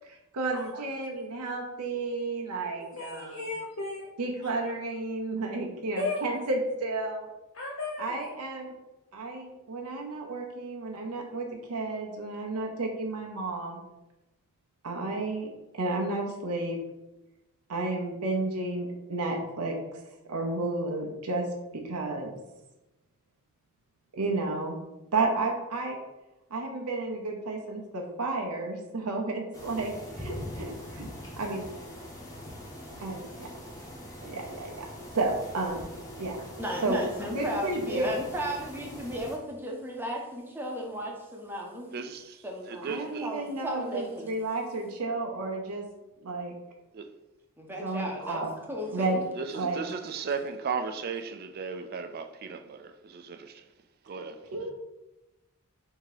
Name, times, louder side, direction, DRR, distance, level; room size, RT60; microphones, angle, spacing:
voice 1, 0.3-3.5 4.2-7.3 8.0-8.7 9.1-13.8 14.8-16.8 17.7-20.0 20.3-21.5 21.7-22.4 24.1-24.8 25.1-26.0 26.5-31.1 31.4-31.6 33.0-33.5 34.2-34.9 35.1-35.8 36.1-36.4 36.8-37.0 37.3-38.2 42.8-45.9 46.2-46.5 47.8-48.5 48.9-49.2 49.5-49.8 54.5-54.7, right 2 dB, 85° right, 0.7 m, -32 dB
voice 2, 2.9-4.1 4.4-4.5 6.0-6.2 7.5-8.1, left 3 dB, 60° left, 0.6 m, -34 dB
sound 1, 29.5-39.4, equal, 15° left, 1.0 m, -43 dB
voice 3, 36.6-41.9 42.4-44.3 47.6-49.2, equal, 10° right, 0.7 m, -35 dB
voice 4, 41.9-43.3 46.9-47.1 49.3-53.6 54.0-54.4, right 5 dB, 45° right, 0.3 m, -36 dB
3.6 x 2.8 x 4.8 m
head